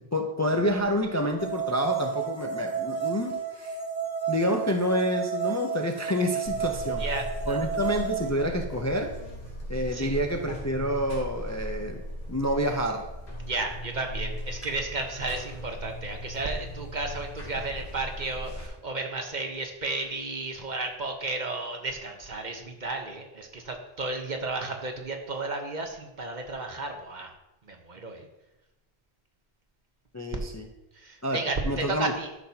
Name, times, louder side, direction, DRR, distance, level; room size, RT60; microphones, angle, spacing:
voice 1, 0.0-3.8 4.3-7.0 7.5-9.1 9.7-12.0 12.3-13.1 30.1-30.7 31.2-32.1, equal, 20° left, 2 dB, 0.5 m, -28 dB
sound 1, 1.4-8.3, right 8 dB, 90° left, 3.4 m, -32 dB
Buzz, 6.5-18.7, equal, 60° left, 2.7 m, -38 dB
voice 2, 7.0-7.6 9.9-10.2 13.4-27.3 27.7-28.3 30.9-32.3, right 3 dB, 50° right, 3 dB, 1.1 m, -33 dB
12.0 x 6.1 x 2.8 m, 0.98 s
omnidirectional pair, 1.0 m